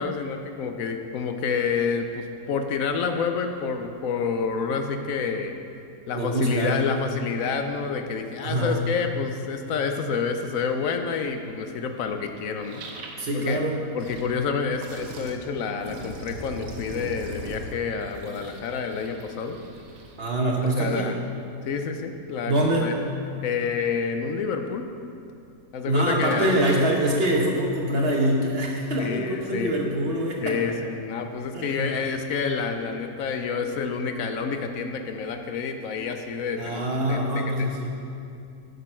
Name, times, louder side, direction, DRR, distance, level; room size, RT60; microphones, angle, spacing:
voice 1, 0.0-5.6 6.1-12.9 13.3-13.6 13.9-19.6 20.8-21.2 21.6-22.9 23.4-24.9 25.7-26.5 29.0-29.7 30.4-37.4, left 5 dB, 65° left, 6 dB, 0.9 m, -28 dB
voice 2, 6.1-6.8 8.4-8.8 13.2-13.8 20.2-21.1 22.5-22.9 25.9-30.5 31.5-31.9 36.6-37.9, right 1 dB, 40° right, -1 dB, 1.1 m, -24 dB
sound 1, 12.0-12.1 12.6-13.3 13.8-14.3 14.8-15.3 15.8-20.2, right 2 dB, 80° right, 1.6 m, -40 dB
10.0 x 6.8 x 4.4 m, 2.5 s
omnidirectional pair, 1.8 m